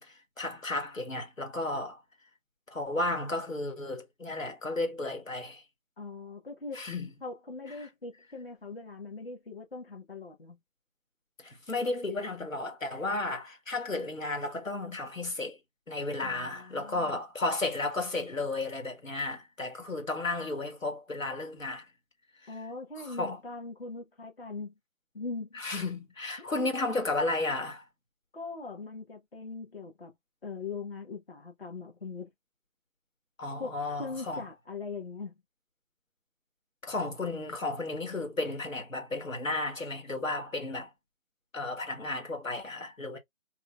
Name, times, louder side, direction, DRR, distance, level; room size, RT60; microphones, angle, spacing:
voice 1, 0.0-2.0 2.7-5.6 6.7-7.1 11.4-15.6 15.9-21.9 22.4-22.5 23.0-23.4 25.5-27.8 33.4-34.4 36.8-40.9 41.5-43.2, left 2 dB, 80° left, 1.8 m, -33 dB
voice 2, 6.0-6.8 7.2-10.6 16.2-17.2 22.5-24.7 25.1-25.6 26.4-26.5 28.3-30.1 30.4-32.3 33.6-35.3, left 4 dB, 45° left, 1.5 m, -41 dB
4.0 x 2.7 x 2.4 m
figure-of-eight pair, 160°, 40 cm